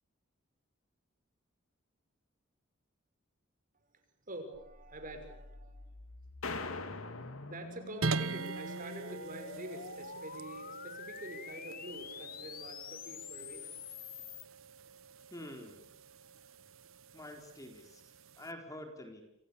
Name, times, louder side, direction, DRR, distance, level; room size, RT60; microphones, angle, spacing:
voice 1, 4.3-5.9 7.5-14.0, right 1 dB, 40° right, 6 dB, 6.0 m, -46 dB
sound 1, 4.5-14.5, left 6 dB, 45° left, 1.1 m, -48 dB
sound 2, 6.4-8.4, left 3 dB, 85° left, 2.5 m, -42 dB
sound 3, 8.0-18.5, right 3 dB, 75° right, 1.2 m, -43 dB
voice 2, 15.3-15.9 17.1-19.2, left 1 dB, 15° left, 4 dB, 4.2 m, -47 dB
29.5 x 27.5 x 7.1 m, 0.76 s
head